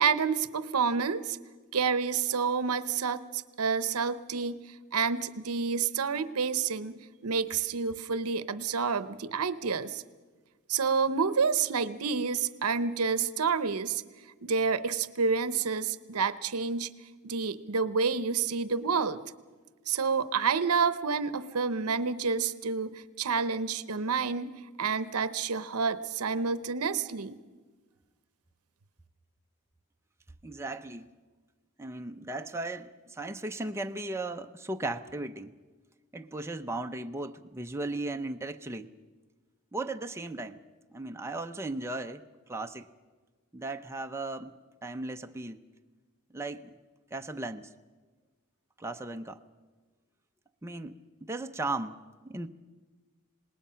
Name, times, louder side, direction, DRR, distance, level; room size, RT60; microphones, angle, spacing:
voice 1, 0.0-1.4 1.7-4.6 4.9-10.0 10.7-14.0 14.4-16.9 17.2-19.2 19.9-24.5 24.8-27.4, right 5 dB, 70° right, 0.8 m, -29 dB
voice 2, 30.4-31.1 31.8-35.5 36.1-38.9 39.7-40.6 40.9-42.9 43.5-44.5 44.8-45.7 46.3-46.8 47.1-47.7 48.8-49.4 50.6-52.5, right 2 dB, 10° right, 0.6 m, -36 dB
26.5 x 19.5 x 5.7 m
head